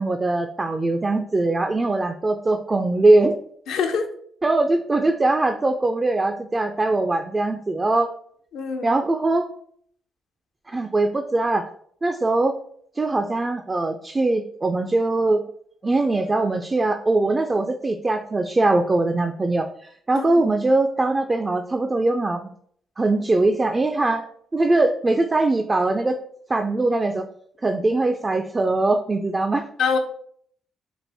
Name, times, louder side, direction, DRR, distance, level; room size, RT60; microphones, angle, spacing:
voice 1, 0.0-3.4 4.4-8.1 8.8-9.5 10.7-11.7 12.0-12.5 13.0-15.4 15.8-19.7 20.1-22.5 23.0-24.2 24.5-26.2 26.5-27.3 27.6-29.6, right 2 dB, 25° right, 5 dB, 0.3 m, -21 dB
voice 2, 3.7-4.1 8.5-9.0 20.1-20.5 29.8-30.0, left 5 dB, 80° left, 5 dB, 0.6 m, -24 dB
4.2 x 2.5 x 3.4 m, 0.63 s
cardioid pair, 80°, 0 cm